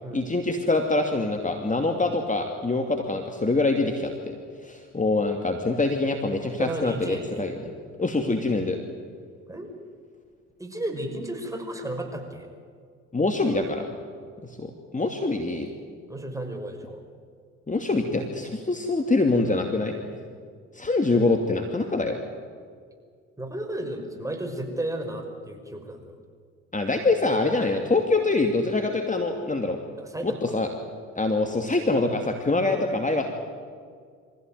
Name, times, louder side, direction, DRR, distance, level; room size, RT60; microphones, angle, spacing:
voice 1, 0.1-4.4 4.6-7.7 8.0-8.8 13.1-13.9 14.4-15.7 17.7-19.9 20.7-22.2 26.7-29.8 30.2-30.7 31.2-33.3, left 3 dB, 20° left, 4 dB, 2.5 m, -25 dB
voice 2, 6.6-7.5 9.5-9.7 10.6-12.5 16.1-17.0 23.4-26.2 30.0-30.6, right 1 dB, 10° right, 3 dB, 5.6 m, -33 dB
24.5 x 16.0 x 9.3 m, 2.1 s
hypercardioid pair, 50°, 36 cm